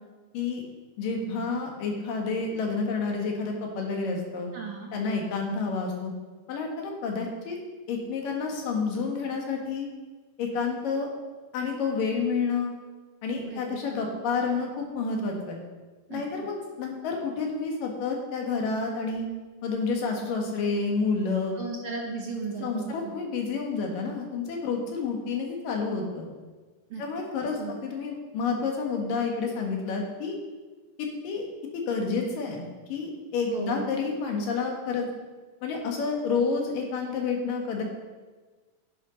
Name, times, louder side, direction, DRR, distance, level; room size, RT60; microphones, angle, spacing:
voice 1, 1.0-4.5 4.9-6.1 6.5-7.6 7.9-9.9 10.4-11.1 11.5-12.7 13.2-15.6 16.1-19.3 19.6-21.6 22.6-26.3 27.0-30.4 31.2-31.5 31.7-32.6 32.9-35.1 35.6-37.8, left 4 dB, 85° left, 1 dB, 3.5 m, -29 dB
voice 2, 4.5-4.9 13.3-13.8 16.1-16.2 21.6-22.9 26.9-27.0 27.6-27.7 33.5-33.9, right 4 dB, 50° right, 0 dB, 2.0 m, -35 dB
11.0 x 10.5 x 5.2 m, 1.3 s
omnidirectional pair, 3.8 m